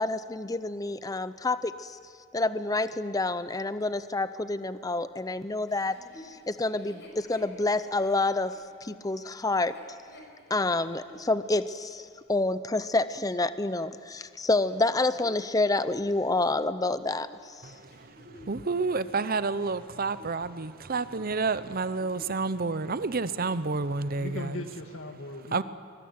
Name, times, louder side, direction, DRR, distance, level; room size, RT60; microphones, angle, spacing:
voice 1, 0.0-2.0 2.3-6.0 6.2-8.5 8.8-9.7 10.5-17.7, left 2 dB, 15° left, 13 dB, 0.6 m, -28 dB
Chuckle chortle, 5.7-11.3 11.8-11.9 14.6-18.6 19.2-20.7 20.9-21.3 21.7-22.4 22.7-22.8 23.2-23.7 24.3-24.4, left 1 dB, 60° left, 5.3 m, -53 dB
voice 2, 17.6-18.1 18.4-24.5 25.5-25.6, right 4 dB, 45° right, 14 dB, 0.7 m, -29 dB
voice 3, 24.1-25.6, left 2 dB, 80° left, 6 dB, 1.8 m, -38 dB
24.0 x 20.5 x 9.6 m, 2.2 s
head